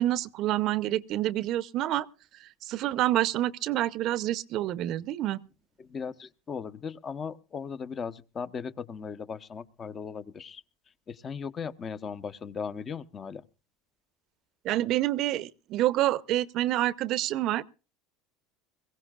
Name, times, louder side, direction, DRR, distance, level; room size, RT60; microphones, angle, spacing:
voice 1, 0.0-2.1 2.4-5.4 14.6-17.6, right 14 dB, 55° right, 0.7 m, -27 dB
voice 2, 5.8-10.6 11.1-13.4, left 6 dB, 30° left, 1.0 m, -37 dB
22.0 x 16.5 x 2.5 m
supercardioid pair, 120°, 0 cm